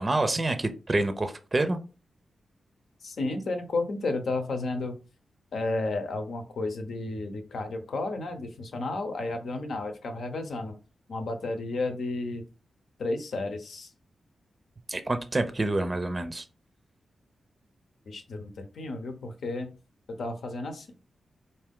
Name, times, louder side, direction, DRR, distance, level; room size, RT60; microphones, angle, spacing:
voice 1, 0.0-1.8 14.9-16.4, right 2 dB, 25° right, 9 dB, 0.5 m, -27 dB
voice 2, 3.0-5.0 5.5-10.7 11.1-12.4 13.0-13.9 18.1-19.7 20.2-20.9, left 2 dB, 75° left, 6 dB, 0.8 m, -32 dB
4.5 x 2.7 x 3.6 m, 0.33 s
wide cardioid pair, 95°, 0 cm